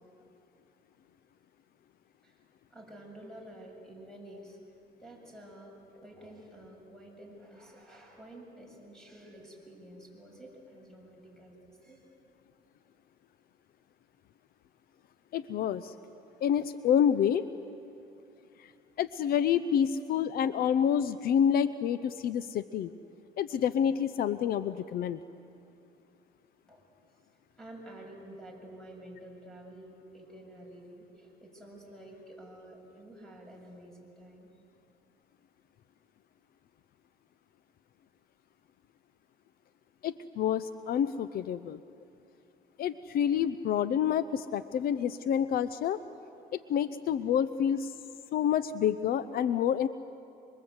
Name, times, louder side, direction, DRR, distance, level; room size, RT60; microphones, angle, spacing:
voice 1, 2.7-4.6 5.0-12.1 26.7-26.9 27.6-34.5, right 1 dB, 5° left, 0 dB, 7.2 m, -50 dB
voice 2, 15.3-15.9 16.4-17.4 18.6-18.7 19.0-22.9 23.4-25.2 40.0-41.8 42.8-46.0 46.5-47.9 48.3-49.9, left 8 dB, 60° left, 14 dB, 0.7 m, -28 dB
27.0 x 24.5 x 8.0 m, 2.7 s
cardioid pair, 110°, 17 cm